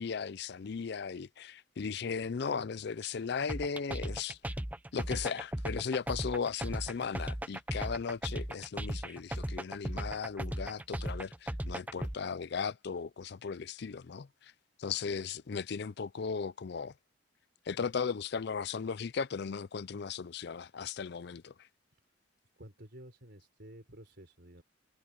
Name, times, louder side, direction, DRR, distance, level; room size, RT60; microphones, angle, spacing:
voice 1, 0.0-4.5 4.9-14.5 14.8-16.9 17.7-21.7, left 6 dB, 55° left, 0.4 m, -37 dB
sound 1, 3.5-12.1, right 1 dB, 10° right, 0.6 m, -37 dB
voice 2, 22.6-24.6, right 1 dB, 55° right, 4.6 m, -52 dB
head